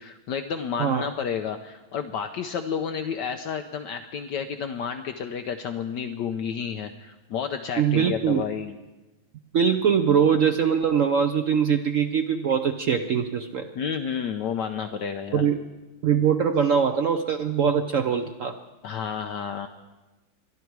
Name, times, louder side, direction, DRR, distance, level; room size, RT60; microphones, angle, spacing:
voice 1, 0.0-8.7 13.8-15.5 18.8-19.7, left 7 dB, 70° left, 7 dB, 1.2 m, -31 dB
voice 2, 7.8-8.4 9.5-13.7 15.3-15.6 16.0-18.6, right 7 dB, 85° right, 6 dB, 0.7 m, -22 dB
22.0 x 12.5 x 4.7 m, 1.1 s
omnidirectional pair, 2.2 m